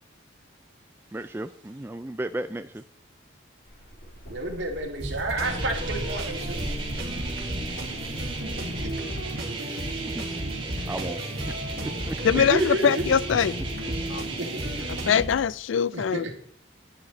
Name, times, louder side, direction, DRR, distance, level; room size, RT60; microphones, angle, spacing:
voice 1, 1.1-2.8 10.1-10.3 10.9-11.2 12.1-12.2, right 1 dB, 10° right, 0.3 m, -34 dB
sound 1, 3.6-8.9, right 1 dB, 45° left, 2.2 m, -41 dB
voice 2, 4.3-6.6 8.4-8.6 12.4-13.1 14.1-14.2 14.5-14.8 15.9-16.3, right 2 dB, 65° right, 2.2 m, -30 dB
sound 2, 5.0-15.4, right 1 dB, 50° right, 2.9 m, -35 dB
sound 3, 5.4-15.2, right 2 dB, 25° right, 2.1 m, -35 dB
voice 3, 12.2-13.6 14.1-14.3 14.9-16.3, left 7 dB, 75° left, 0.3 m, -23 dB
11.0 x 9.6 x 4.0 m
head